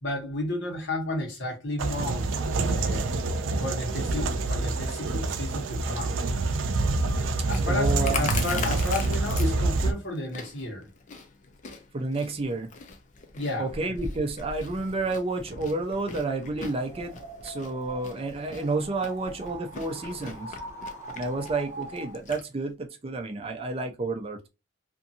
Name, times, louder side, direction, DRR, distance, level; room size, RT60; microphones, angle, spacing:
voice 1, 0.0-2.3 2.6-3.1 3.6-6.1 7.5-10.9 13.3-13.7, left 1 dB, 65° left, 1.1 m, -32 dB
sound 1, 1.8-9.9, right 3 dB, 85° right, 0.4 m, -27 dB
Chewing mastication, 6.8-22.4, left 4 dB, 40° left, 0.4 m, -40 dB
voice 2, 7.6-8.7 11.9-12.7 13.6-20.6 21.1-24.4, right 3 dB, 30° right, 0.4 m, -30 dB
sound 2, 16.5-22.3, right 2 dB, 15° right, 0.9 m, -43 dB
2.6 x 2.5 x 2.7 m
head